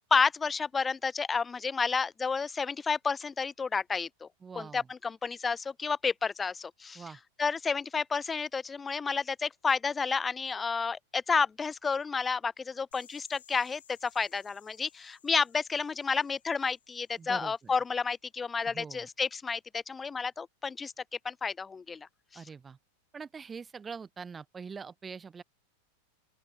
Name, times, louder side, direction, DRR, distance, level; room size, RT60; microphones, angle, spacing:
voice 1, 0.0-4.3 4.6-7.0 7.4-20.9 21.2-22.4, left 5 dB, 15° left, 0.5 m, -31 dB
voice 2, 4.4-4.9 6.9-7.2 17.2-17.7 18.7-19.1 22.3-22.8 23.1-25.4, right 5 dB, 15° right, 0.8 m, -43 dB
sound 1, 12.9-17.7, left 9 dB, 65° left, 3.0 m, -61 dB
open air
figure-of-eight pair, 90°, 0 cm